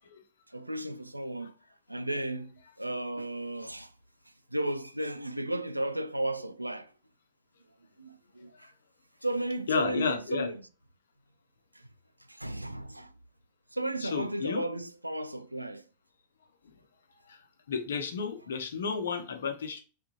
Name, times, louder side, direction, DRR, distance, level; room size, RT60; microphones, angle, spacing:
voice 1, 0.5-1.5 1.9-3.9 4.5-6.9 8.0-8.7 9.2-10.6 11.7-11.9 12.3-13.1 13.7-15.8, right 1 dB, 85° right, 0.3 m, -34 dB
voice 2, 9.7-10.5 14.0-14.6 16.6-16.7 17.3-17.4 17.7-19.8, left 6 dB, 65° left, 0.6 m, -32 dB
3.5 x 3.1 x 3.0 m
figure-of-eight pair, 90°, 0 cm